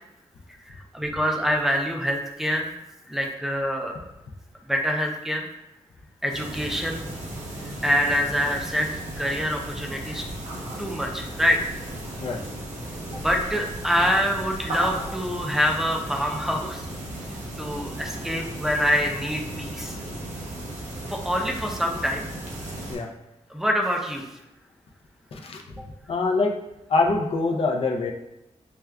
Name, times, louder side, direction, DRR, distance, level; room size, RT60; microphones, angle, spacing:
voice 1, 0.7-2.7 3.1-3.9 4.7-5.5 6.2-7.0 7.8-10.2 10.8-11.6 13.1-16.9 17.6-20.0 21.1-22.3 23.5-24.2, equal, 5° right, 1 dB, 0.4 m, -25 dB
sound 1, 6.3-22.9, right 1 dB, 90° right, 0.9 m, -35 dB
voice 2, 25.3-25.6 26.1-26.6 26.9-28.1, left 3 dB, 55° left, 2 dB, 0.5 m, -24 dB
6.0 x 2.3 x 2.2 m, 0.90 s
wide cardioid pair, 175°, 12 cm